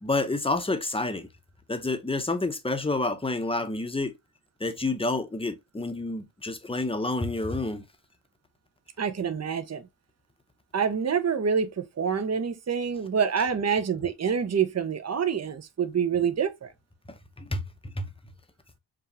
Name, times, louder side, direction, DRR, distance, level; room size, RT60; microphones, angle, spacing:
voice 1, 0.0-1.3 1.7-4.1 4.6-7.8 17.1-17.6 18.0-18.1, left 2 dB, 10° left, 0.8 m, -29 dB
voice 2, 9.0-9.9 10.7-16.7, right 6 dB, 30° right, 0.7 m, -27 dB
5.1 x 2.3 x 2.7 m
cardioid pair, 60°, 50 cm